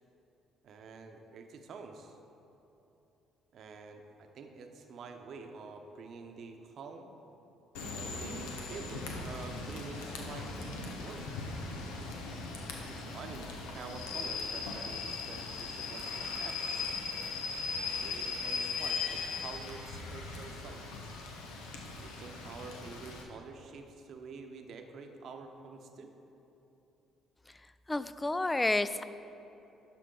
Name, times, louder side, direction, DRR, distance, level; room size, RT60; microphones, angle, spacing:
voice 1, 0.6-2.2 3.5-7.1 7.9-11.2 12.9-16.6 18.0-20.8 22.0-26.1, right 4 dB, 60° right, 5 dB, 0.8 m, -48 dB
Rain / Train, 7.7-23.2, left 4 dB, 80° left, 0.9 m, -39 dB
voice 2, 27.9-29.0, left 2 dB, 20° left, 14 dB, 0.3 m, -30 dB
11.5 x 5.7 x 3.9 m, 3.0 s
hypercardioid pair, 50°, 0 cm